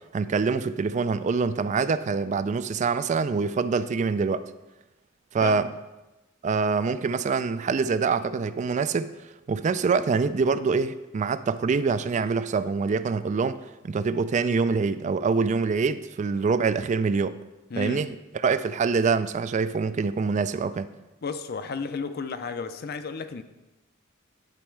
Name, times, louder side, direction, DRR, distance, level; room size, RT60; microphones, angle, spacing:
voice 1, 0.1-4.4 5.3-5.7 6.4-9.1 9.5-13.6 13.8-17.4 17.8-18.1 18.4-20.9, right 4 dB, 40° right, 0.3 m, -25 dB
voice 2, 5.4-5.8 17.7-18.1 21.2-23.4, left 4 dB, 50° left, 0.5 m, -33 dB
10.5 x 4.3 x 4.6 m
head